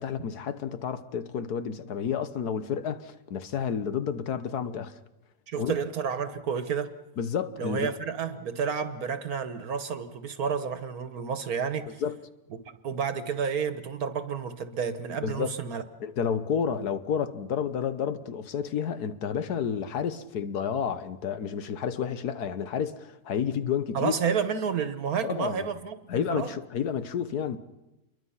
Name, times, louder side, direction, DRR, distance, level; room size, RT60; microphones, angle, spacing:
voice 1, 0.0-4.9 5.6-5.7 7.2-7.9 12.0-12.2 15.2-15.5 16.0-24.1 25.2-25.7 26.1-27.6, left 7 dB, 85° left, 1.6 m, -30 dB
voice 2, 5.5-6.9 7.6-12.0 12.8-15.8 23.9-26.5, right 6 dB, 75° right, 1.6 m, -30 dB
28.0 x 23.0 x 5.7 m
omnidirectional pair, 1.6 m